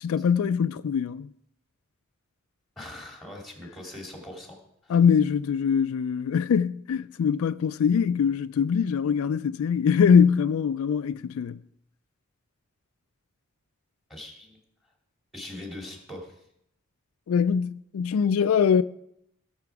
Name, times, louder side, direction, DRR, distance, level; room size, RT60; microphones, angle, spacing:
voice 1, 0.0-1.3 4.9-11.6 17.3-18.8, left 7 dB, 75° left, 0.3 m, -23 dB
voice 2, 2.8-4.6 4.8-4.9 14.1-14.6 15.3-16.5, left 1 dB, ahead, 2.6 m, -41 dB
17.5 x 6.8 x 4.8 m
head